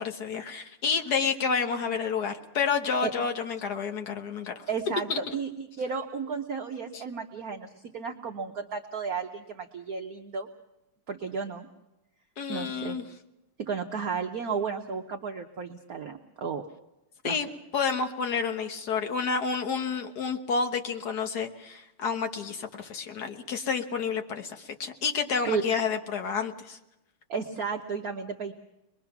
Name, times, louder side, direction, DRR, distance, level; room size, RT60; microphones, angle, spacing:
voice 1, 0.0-4.6 5.1-5.2 6.9-7.0 12.4-13.1 17.2-17.5 17.7-26.8, left 5 dB, 50° left, 6 dB, 1.7 m, -30 dB
voice 2, 4.7-10.5 11.1-11.7 12.5-13.0 13.6-16.6 17.2-17.4 25.4-25.6 27.3-28.5, right 5 dB, 55° right, 4 dB, 1.2 m, -33 dB
23.5 x 22.0 x 5.9 m, 0.91 s
omnidirectional pair, 2.4 m